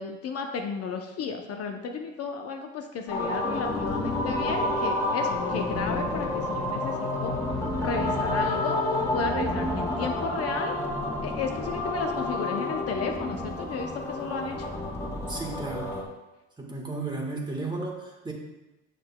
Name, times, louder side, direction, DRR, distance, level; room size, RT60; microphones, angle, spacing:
voice 1, 0.0-7.3 7.8-8.8 9.1-10.7 11.2-14.7, left 5 dB, 45° left, 4 dB, 0.7 m, -33 dB
sound 1, 3.1-16.0, left 1 dB, 10° left, 1.8 m, -29 dB
voice 2, 15.3-15.9 16.6-18.3, right 3 dB, 15° right, 0 dB, 1.3 m, -34 dB
6.6 x 6.5 x 2.2 m, 1.0 s
supercardioid pair, 90°, 33 cm